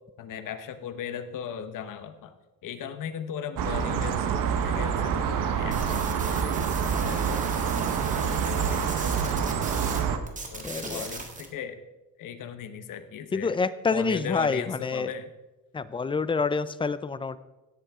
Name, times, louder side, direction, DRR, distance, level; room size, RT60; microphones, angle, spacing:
voice 1, 0.2-2.3 2.6-4.2 4.6-7.4 8.0-9.4 10.5-11.8 12.2-13.6 13.9-15.3, left 8 dB, 65° left, 9 dB, 1.1 m, -38 dB
sound 1, 3.6-10.2, right 7 dB, 70° right, 1.1 m, -27 dB
sound 2, 5.7-10.0 10.3-11.5, right 3 dB, 20° right, 1.6 m, -38 dB
voice 2, 10.6-11.1 13.3-15.1 15.7-17.4, left 4 dB, 15° left, 15 dB, 0.4 m, -27 dB
17.0 x 8.5 x 3.6 m, 1.1 s
cardioid pair, 140°, 34 cm